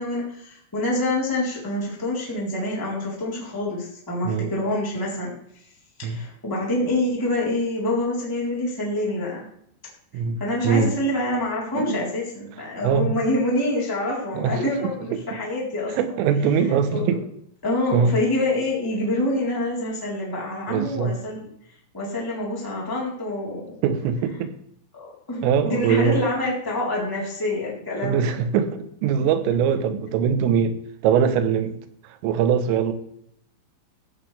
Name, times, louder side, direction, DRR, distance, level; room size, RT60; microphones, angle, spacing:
voice 1, 0.0-5.3 6.0-9.5 10.4-16.1 16.6-17.2 17.6-21.5 21.9-23.8 24.9-28.4 29.5-29.6, left 1 dB, 5° left, -4 dB, 3.0 m, -26 dB
voice 2, 12.8-13.2 14.4-14.9 16.0-17.2 17.9-18.2 20.7-21.2 23.8-24.5 25.4-26.3 28.0-31.8 32.1-32.9, right 7 dB, 90° right, 10 dB, 3.6 m, -22 dB
15.5 x 11.0 x 3.4 m, 0.70 s
omnidirectional pair, 5.8 m